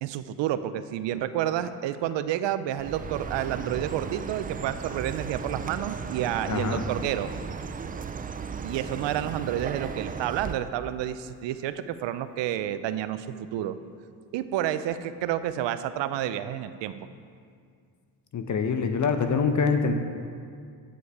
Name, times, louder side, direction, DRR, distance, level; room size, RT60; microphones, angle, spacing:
voice 1, 0.0-7.3 8.6-13.3 13.5-13.8 14.3-16.9, right 11 dB, 70° right, 12 dB, 0.6 m, -30 dB
Chirp tweet, 2.8-10.6, right 5 dB, 20° right, 0.3 m, -36 dB
voice 2, 6.5-6.8 18.3-19.9, left 5 dB, 40° left, 7 dB, 0.8 m, -25 dB
8.5 x 8.2 x 4.8 m, 2.2 s
cardioid pair, 85°, 44 cm